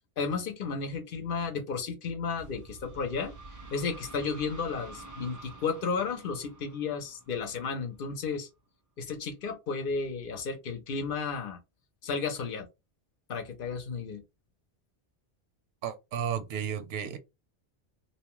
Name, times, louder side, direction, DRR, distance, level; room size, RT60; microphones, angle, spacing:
voice 1, 0.2-3.3 3.7-8.5 9.0-11.6 12.0-12.7 13.3-14.2, left 5 dB, 60° left, 0.8 m, -33 dB
sound 1, 2.4-8.0, right 2 dB, 30° right, 0.3 m, -48 dB
voice 2, 15.8-17.2, right 8 dB, 85° right, 0.9 m, -33 dB
2.8 x 2.1 x 3.0 m
omnidirectional pair, 1.0 m